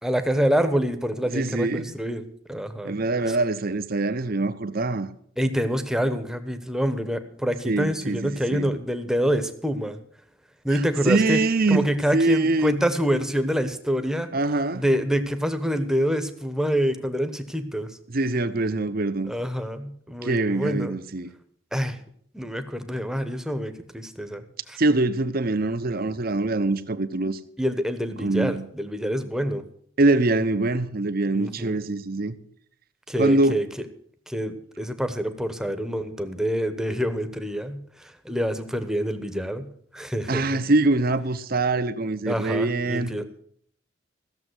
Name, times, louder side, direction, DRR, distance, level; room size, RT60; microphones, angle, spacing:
voice 1, 0.0-2.2 2.5-3.0 3.3-3.4 5.4-10.0 10.6-11.4 11.7-14.3 14.7-18.0 19.3-21.0 21.7-22.0 22.3-24.8 27.6-29.6 31.4-31.8 33.1-33.7 34.3-39.7 39.9-40.4 42.3-43.4, equal, 5° right, 1.0 m, -26 dB
voice 2, 1.3-1.9 2.8-5.1 7.6-8.7 10.7-11.8 12.1-12.8 14.3-14.9 18.1-19.3 20.2-21.3 24.8-27.4 28.2-28.7 30.0-32.4 33.2-33.6 40.3-43.1, right 2 dB, 50° right, 0.9 m, -24 dB
15.0 x 7.3 x 8.0 m
head